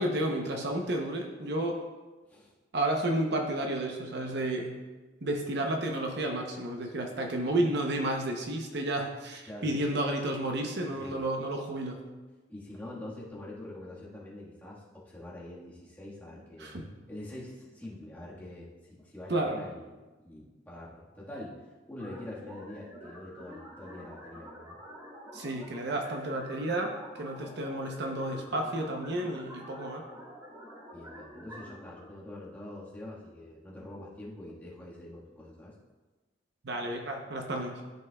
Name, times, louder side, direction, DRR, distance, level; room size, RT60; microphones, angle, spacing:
voice 1, 0.0-1.8 2.7-4.7 5.2-12.0 16.6-16.8 19.3-19.6 25.3-30.0 36.6-37.8, right 1 dB, 60° right, 2 dB, 0.8 m, -31 dB
voice 2, 9.5-9.8 10.9-11.2 12.5-16.7 17.1-20.0 20.2-21.6 21.9-24.8 30.9-35.7, left 1 dB, 10° left, -7 dB, 1.6 m, -45 dB
sound 1, 22.0-32.0, equal, 20° right, 2.1 m, -48 dB
13.0 x 5.4 x 2.3 m, 1.2 s
head